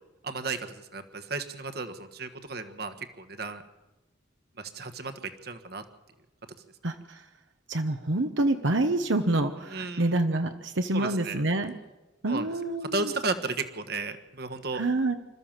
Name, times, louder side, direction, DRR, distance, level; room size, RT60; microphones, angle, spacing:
voice 1, 0.2-3.6 4.6-5.1 5.4-5.8 9.7-10.1 10.9-11.4 12.3-12.5 12.9-14.8, right 3 dB, 55° right, 8 dB, 1.4 m, -34 dB
voice 2, 6.8-7.2 7.7-11.7 12.2-13.1 14.7-15.1, right 2 dB, 75° right, 7 dB, 1.1 m, -27 dB
26.5 x 13.5 x 7.5 m, 1.1 s
head